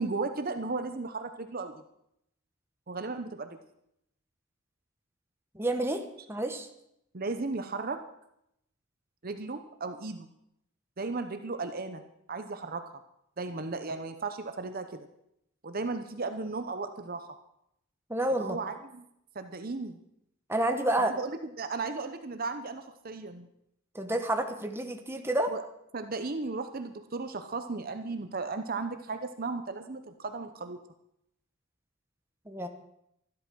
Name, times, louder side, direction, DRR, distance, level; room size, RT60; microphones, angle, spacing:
voice 1, 0.0-1.8 2.9-3.5 7.1-8.0 9.2-10.3 11.0-12.0 12.3-12.8 13.4-15.1 15.6-17.2 18.4-19.0 19.3-20.0 20.9-23.5 25.5-25.6 25.9-30.8, right 3 dB, 45° right, 8 dB, 0.8 m, -35 dB
voice 2, 5.5-6.0 6.3-6.7 18.1-18.6 20.5-21.1 23.9-25.5 32.5-32.7, right 1 dB, 10° right, 5 dB, 1.2 m, -29 dB
13.5 x 11.5 x 6.2 m, 0.77 s
head